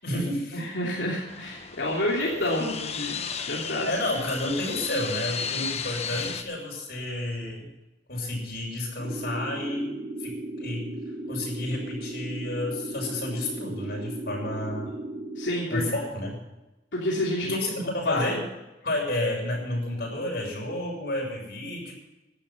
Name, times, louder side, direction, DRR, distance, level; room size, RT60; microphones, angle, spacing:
voice 1, 0.0-0.6 3.8-7.7 8.1-9.9 10.2-10.9 11.3-15.0 15.7-16.4 17.4-18.4 18.8-21.9, left 1 dB, 60° left, -1 dB, 7.1 m, -31 dB
voice 2, 0.5-3.9 15.4-15.8 16.9-17.6 18.0-18.4, left 1 dB, 85° left, -4 dB, 3.1 m, -29 dB
sound 1, 1.3-6.4, left 6 dB, 35° left, 1.0 m, -34 dB
sound 2, 9.0-15.5, right 1 dB, 25° right, 6.7 m, -36 dB
16.0 x 11.5 x 5.9 m, 1.0 s
head